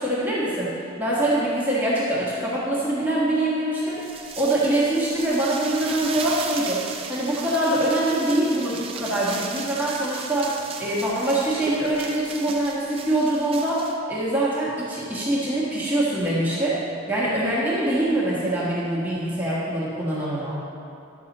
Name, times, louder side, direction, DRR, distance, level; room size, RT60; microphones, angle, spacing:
voice 1, 0.0-4.0 4.4-20.6, right 1 dB, 10° right, -8 dB, 1.5 m, -24 dB
sound 1, 3.9-14.0, right 5 dB, 25° right, 0.6 m, -36 dB
11.0 x 6.7 x 4.2 m, 2.7 s
head